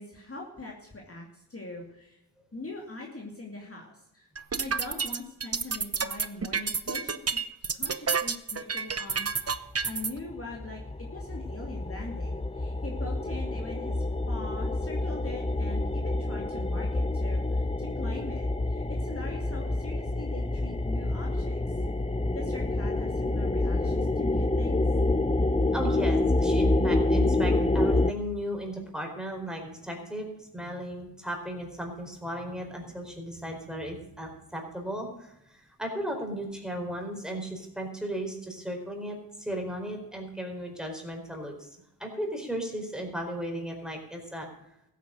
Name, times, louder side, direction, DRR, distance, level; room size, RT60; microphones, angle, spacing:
voice 1, 0.0-2.2 2.5-4.3 4.6-7.4 7.7-21.8 22.3-24.8, left 2 dB, 35° left, -1 dB, 2.5 m, -42 dB
sound 1, 4.4-10.1, right 5 dB, 35° right, 0.9 m, -29 dB
sound 2, 9.5-9.6 9.8-28.1, left 2 dB, 15° left, 0.7 m, -27 dB
voice 2, 25.7-44.5, equal, ahead, 1 dB, 4.5 m, -36 dB
15.0 x 9.3 x 6.3 m, 0.84 s
cardioid pair, 55°, 41 cm